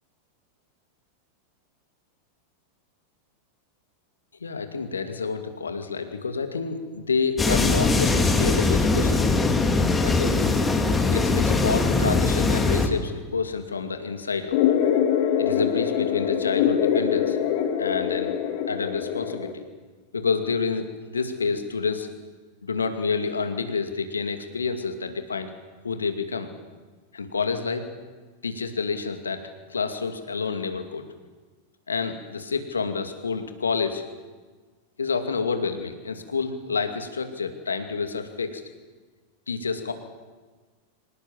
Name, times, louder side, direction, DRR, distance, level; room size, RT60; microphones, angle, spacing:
voice 1, 4.4-9.2 10.0-10.4 11.1-14.6 15.4-17.4 17.8-18.3 18.7-19.6 20.1-22.1 22.6-25.5 25.8-26.5 27.1-27.9 28.4-29.4 29.7-31.1 31.9-34.0 35.0-38.6 39.5-39.9, left 5 dB, 75° left, 7 dB, 2.4 m, -28 dB
sound 1, 7.4-12.9, left 3 dB, 15° left, 2.4 m, -21 dB
sound 2, 14.5-19.5, left 9 dB, 50° left, 2.6 m, -24 dB
25.5 x 19.5 x 7.4 m, 1.4 s
figure-of-eight pair, 90°, 0 cm